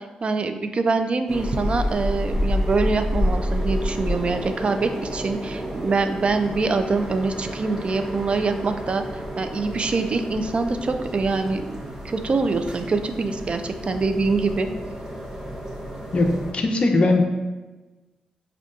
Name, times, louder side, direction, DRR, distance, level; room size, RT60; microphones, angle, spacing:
voice 1, 0.0-9.0 9.4-11.8 12.0-14.7, right 3 dB, 45° right, 8 dB, 0.3 m, -24 dB
sound 1, 1.3-16.5, equal, 20° right, 0.9 m, -30 dB
voice 2, 16.1-17.2, left 2 dB, 45° left, 3 dB, 0.5 m, -20 dB
5.0 x 2.2 x 2.4 m, 1.2 s
cardioid pair, 60°, 3 cm